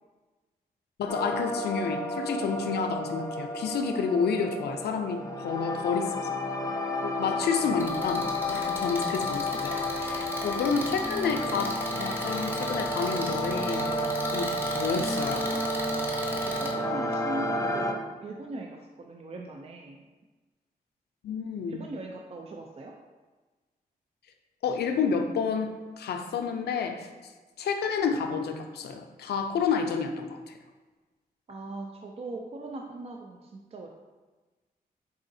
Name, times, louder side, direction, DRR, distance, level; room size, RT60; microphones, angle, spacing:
voice 1, 1.0-6.3 7.0-13.9 14.3-15.5 21.2-21.8 24.6-27.1 27.6-30.6, left 5 dB, 90° left, 5 dB, 0.4 m, -30 dB
sound 1, 1.1-17.9, left 1 dB, 20° left, 0.5 m, -31 dB
sound 2, 7.8-16.7, equal, 10° right, 1.1 m, -37 dB
voice 2, 16.5-20.0 21.7-22.9 31.5-33.9, right 2 dB, 40° right, 1 dB, 0.4 m, -40 dB
4.8 x 3.7 x 2.6 m, 1.3 s
cardioid pair, 65°, 16 cm